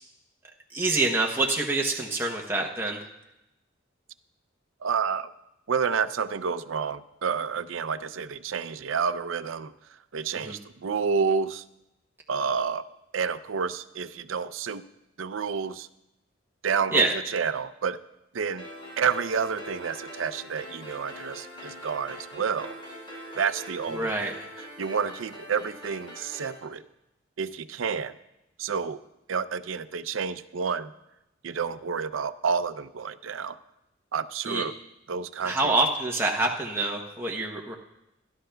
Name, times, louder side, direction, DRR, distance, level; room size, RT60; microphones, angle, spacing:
voice 1, 0.7-3.0 10.3-10.6 16.9-17.1 23.9-24.3 34.5-34.6 35.4-37.8, right 2 dB, 10° right, -1 dB, 0.8 m, -26 dB
voice 2, 4.8-5.3 5.7-9.7 10.1-11.6 12.3-12.9 13.1-14.8 15.2-15.9 16.6-18.0 18.3-18.7 19.0-22.8 23.4-24.4 24.8-26.8 27.4-28.2 28.6-29.0 29.3-30.9 31.4-33.6 34.1-34.7 35.1-35.7, right 6 dB, 75° right, 12 dB, 0.5 m, -29 dB
sound 1, 18.6-26.6, equal, 25° left, 5.6 m, -43 dB
24.5 x 11.5 x 2.3 m, 0.91 s
head